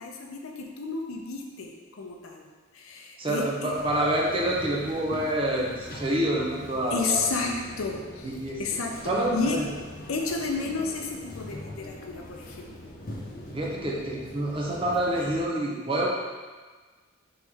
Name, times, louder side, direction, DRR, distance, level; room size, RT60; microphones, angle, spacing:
voice 1, 0.0-1.7 2.0-2.4 2.8-3.7 6.9-8.0 8.6-8.9 9.3-9.6 10.1-12.9, left 4 dB, 90° left, 1 dB, 0.6 m, -31 dB
voice 2, 3.2-7.6 8.2-8.6 9.0-9.7 13.5-16.1, right 1 dB, 25° right, -3 dB, 0.6 m, -27 dB
sound 1, 3.7-15.4, left 1 dB, 45° left, 0.6 m, -42 dB
4.8 x 3.1 x 3.5 m, 1.4 s
head